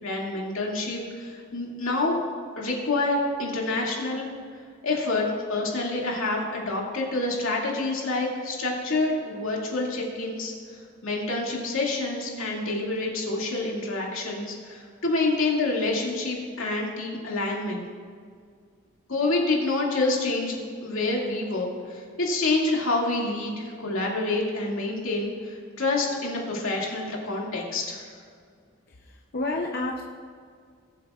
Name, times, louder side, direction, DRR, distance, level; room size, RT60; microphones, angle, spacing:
voice 1, 0.0-2.2 2.6-4.3 4.8-10.5 11.0-17.8 19.1-28.1, left 2 dB, 80° left, -2 dB, 2.2 m, -27 dB
voice 2, 28.9-30.0, left 2 dB, 50° left, 0 dB, 0.6 m, -30 dB
20.0 x 7.7 x 2.4 m, 2.1 s
head